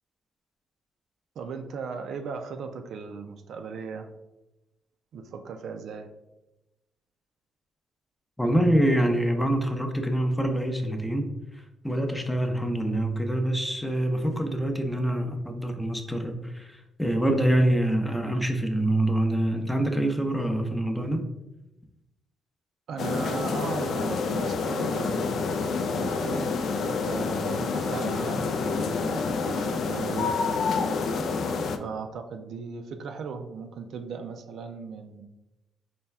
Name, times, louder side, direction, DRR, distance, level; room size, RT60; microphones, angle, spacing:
voice 1, 1.4-4.1 5.1-6.1 22.9-30.4 31.7-35.2, right 5 dB, 70° right, 7 dB, 0.4 m, -37 dB
voice 2, 8.4-21.3, right 1 dB, 5° left, 4 dB, 0.5 m, -25 dB
sound 1, 23.0-31.8, left 4 dB, 65° left, 0.3 m, -28 dB
4.2 x 2.3 x 3.3 m, 0.96 s
cardioid pair, 90°, 0 cm